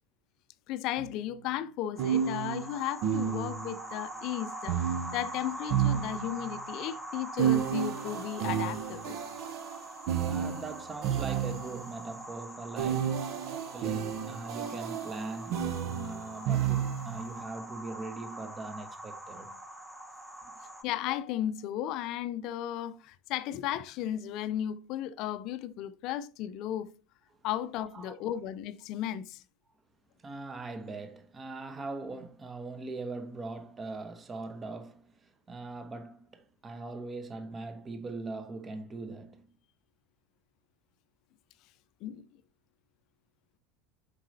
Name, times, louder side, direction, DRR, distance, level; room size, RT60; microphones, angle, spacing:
voice 1, 0.7-9.2 20.8-26.9 27.4-29.4 42.0-42.2, left 11 dB, 55° left, 0.5 m, -35 dB
sound 1, 1.0-1.1 2.0-3.8 4.7-6.6 7.4-11.9 12.8-17.3, right 9 dB, 55° right, 0.7 m, -31 dB
sound 2, 2.0-20.8, right 1 dB, 5° right, 1.2 m, -44 dB
voice 2, 10.2-19.5 27.9-28.1 30.2-39.5, right 3 dB, 25° right, 1.1 m, -41 dB
7.3 x 5.3 x 2.8 m
hypercardioid pair, 75°, 0 cm